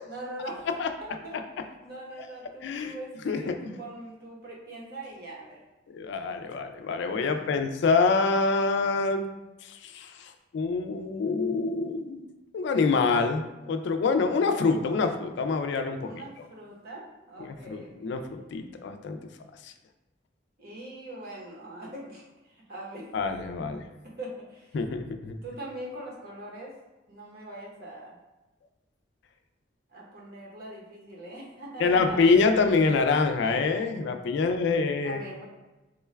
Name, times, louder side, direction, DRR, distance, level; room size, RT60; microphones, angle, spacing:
voice 1, 0.1-0.7 1.0-1.4 1.8-5.6 7.1-7.6 16.0-18.2 20.6-22.2 22.5-23.1 24.2-24.8 25.4-26.8 27.1-28.2 29.9-32.2 35.0-35.5, right 1 dB, 55° right, -3 dB, 0.9 m, -42 dB
voice 2, 2.6-3.0 3.2-3.8 5.9-9.3 9.6-12.3 12.5-16.2 17.4-19.2 19.6-19.7 23.1-23.9 24.7-25.4 31.8-35.2, left 4 dB, 65° left, 7 dB, 0.3 m, -26 dB
3.7 x 2.3 x 3.2 m, 1.1 s
head